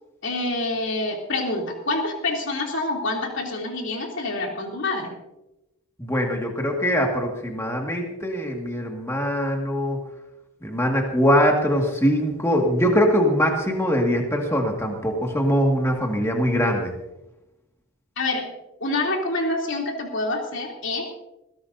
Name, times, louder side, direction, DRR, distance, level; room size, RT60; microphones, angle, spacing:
voice 1, 0.2-5.1 18.2-18.5 18.8-21.1, left 2 dB, 55° left, 0 dB, 3.2 m, -27 dB
voice 2, 6.0-10.0 10.6-16.9, equal, 10° left, 1 dB, 1.9 m, -22 dB
20.5 x 16.5 x 2.7 m, 0.93 s
head